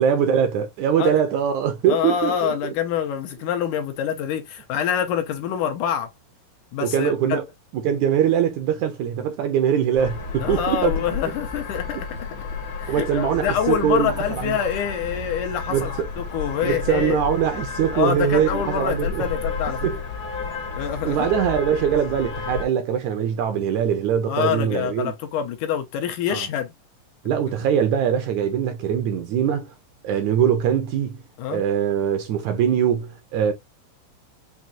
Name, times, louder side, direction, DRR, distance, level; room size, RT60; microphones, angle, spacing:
voice 1, 0.0-2.5 6.8-7.4 7.7-11.0 12.9-14.5 15.7-16.1 16.6-19.2 19.8-20.0 21.0-25.1 26.3-26.5 27.2-29.7 30.0-31.2 31.5-33.5, right 9 dB, 75° right, 1.8 m, -22 dB
voice 2, 1.9-6.1 6.7-7.4 10.4-12.1 12.8-17.2 17.9-19.9 20.8-21.3 24.3-26.7 31.4-31.6, left 8 dB, 75° left, 2.1 m, -26 dB
sound 1, 10.0-22.6, left 4 dB, 50° left, 1.5 m, -31 dB
6.0 x 2.7 x 2.7 m
omnidirectional pair, 4.0 m